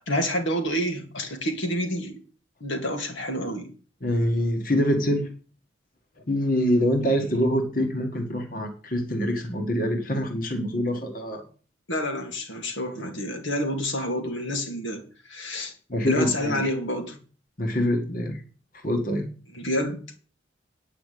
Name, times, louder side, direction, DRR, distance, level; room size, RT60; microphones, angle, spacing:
voice 1, 0.1-2.2 2.6-3.7 11.9-15.0 15.3-15.7 16.1-17.2 19.5-20.2, equal, 85° left, 4 dB, 2.4 m, -28 dB
voice 2, 4.0-5.3 6.3-11.4 15.9-16.6 17.6-18.4 18.8-19.3, equal, 45° left, 4 dB, 1.8 m, -25 dB
9.7 x 5.7 x 8.4 m, 0.38 s
head